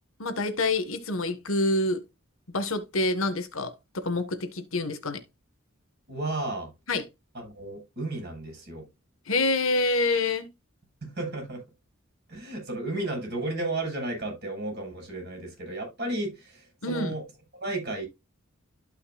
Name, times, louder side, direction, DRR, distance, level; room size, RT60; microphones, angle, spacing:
voice 1, 0.2-2.0 2.5-5.2 6.9-7.1 9.3-10.5 16.8-17.1, left 2 dB, 80° left, 1.6 m, -27 dB
voice 2, 6.1-6.7 7.3-8.9 11.0-11.6 12.3-17.2 17.6-18.1, right 2 dB, 55° right, 6.4 m, -33 dB
12.5 x 5.7 x 2.4 m
head